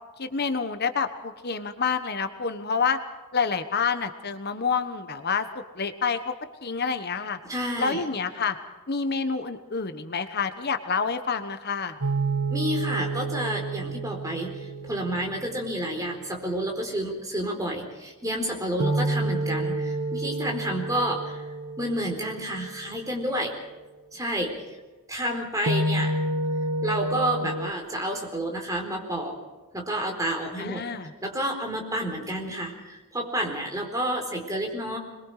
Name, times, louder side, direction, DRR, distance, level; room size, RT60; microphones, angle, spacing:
voice 1, 0.2-3.0 3.3-6.3 6.6-7.4 7.8-8.6 8.9-12.0 30.6-31.1, left 5 dB, 45° left, 9 dB, 1.2 m, -28 dB
voice 2, 7.4-8.0 12.5-21.5 21.8-23.5 24.1-24.5 25.1-26.2 26.8-29.4 29.7-30.8 31.2-35.0, right 1 dB, 15° right, 2 dB, 4.2 m, -30 dB
sound 1, 12.0-16.1 18.8-23.0 25.7-27.7, right 2 dB, 80° right, 1.5 m, -29 dB
26.5 x 22.0 x 4.9 m, 1.2 s
head